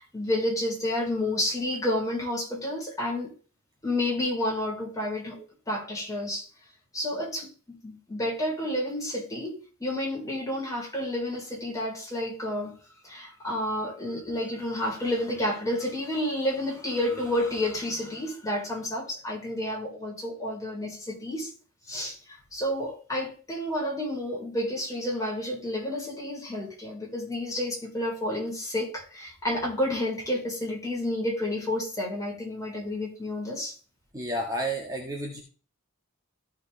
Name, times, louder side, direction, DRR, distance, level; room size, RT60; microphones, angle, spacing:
voice 1, 0.0-3.3 3.8-5.4 5.7-6.5 6.9-7.5 7.8-12.8 13.0-21.5 21.8-33.8, left 1 dB, 15° left, 4.2 m, -30 dB
voice 2, 34.1-35.4, right 1 dB, 15° right, 1.6 m, -31 dB
15.5 x 5.3 x 3.3 m
head